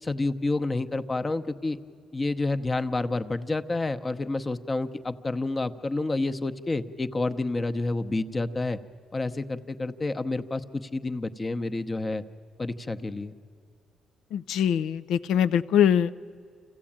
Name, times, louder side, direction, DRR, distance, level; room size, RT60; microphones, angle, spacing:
voice 1, 0.0-1.8 2.1-8.8 9.1-12.2 12.6-13.3, left 2 dB, 25° left, 9 dB, 0.8 m, -29 dB
voice 2, 14.3-16.1, left 9 dB, 80° left, 16 dB, 0.5 m, -23 dB
26.5 x 15.0 x 8.8 m, 2.3 s
cardioid pair, 90°, 0 cm